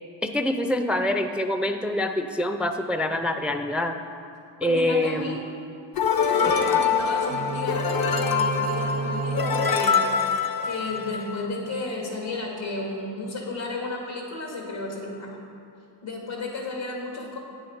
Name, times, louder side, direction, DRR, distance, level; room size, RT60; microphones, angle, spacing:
voice 1, 0.2-4.0 4.6-5.4, left 1 dB, 5° right, 7 dB, 0.4 m, -25 dB
voice 2, 4.6-5.4 6.3-10.1 10.6-15.3 16.0-17.4, left 2 dB, 75° left, -1 dB, 2.1 m, -32 dB
sound 1, 6.0-11.5, left 6 dB, 50° left, 0.8 m, -24 dB
sound 2, 7.3-11.3, right 3 dB, 60° right, 0.6 m, -33 dB
8.8 x 7.1 x 5.2 m, 2.5 s
cardioid pair, 60°, 46 cm